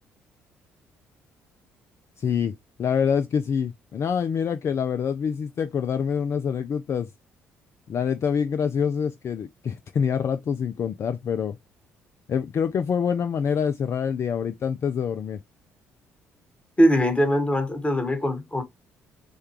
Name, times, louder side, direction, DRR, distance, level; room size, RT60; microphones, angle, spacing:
voice 1, 2.2-2.5 2.8-7.1 7.9-11.6 12.3-15.4, left 7 dB, 45° left, 0.4 m, -26 dB
voice 2, 16.8-18.6, equal, 20° left, 1.5 m, -21 dB
6.4 x 2.3 x 3.0 m
hypercardioid pair, 50°, 6 cm